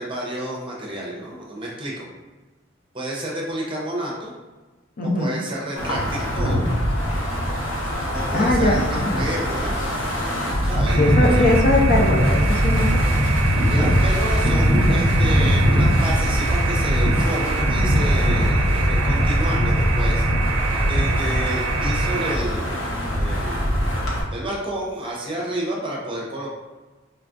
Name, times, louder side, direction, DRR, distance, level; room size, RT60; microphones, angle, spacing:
voice 1, 0.0-2.1 2.9-4.3 5.0-6.7 7.9-9.9 10.6-11.5 13.7-20.2 20.8-23.9 24.3-26.5, right 1 dB, 25° right, -3 dB, 0.7 m, -30 dB
voice 2, 5.0-5.3 8.3-9.2 11.0-12.9, left 1 dB, 50° left, -1 dB, 0.5 m, -20 dB
Wind, 5.8-24.2, equal, 85° left, 0.9 m, -21 dB
sound 1, 10.9-22.4, right 5 dB, 80° right, 0.5 m, -28 dB
4.3 x 2.3 x 2.5 m, 1.2 s
head